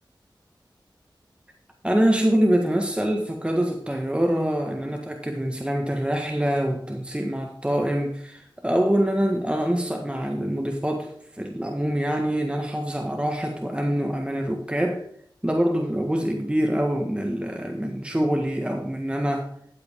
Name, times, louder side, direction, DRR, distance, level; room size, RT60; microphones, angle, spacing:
voice 1, 1.8-11.1 11.4-15.0 15.4-19.5, equal, 15° right, 2 dB, 1.5 m, -25 dB
13.0 x 8.0 x 3.6 m, 0.66 s
wide cardioid pair, 50°, 8 cm